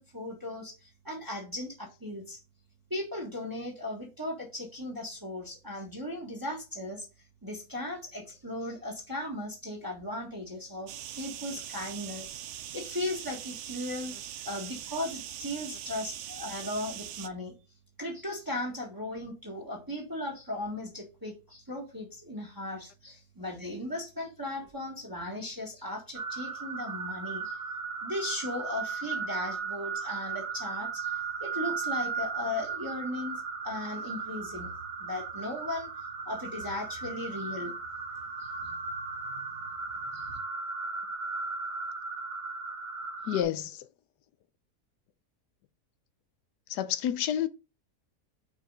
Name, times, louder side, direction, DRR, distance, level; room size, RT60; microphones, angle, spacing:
voice 1, 0.0-2.4 2.9-7.1 7.4-10.9 11.2-12.3 12.7-17.5 18.0-27.6 28.0-34.7 35.0-35.9 36.2-37.7 38.4-38.8 39.5-39.6 40.1-40.3, left 1 dB, 15° right, 1.6 m, -37 dB
sound 1, 10.9-17.3, right 11 dB, 75° right, 0.7 m, -41 dB
sound 2, 26.1-43.4, right 5 dB, 45° right, 1.0 m, -36 dB
voice 2, 43.2-43.9 46.7-47.5, left 10 dB, 85° left, 1.2 m, -29 dB
5.6 x 4.8 x 3.9 m
omnidirectional pair, 1.7 m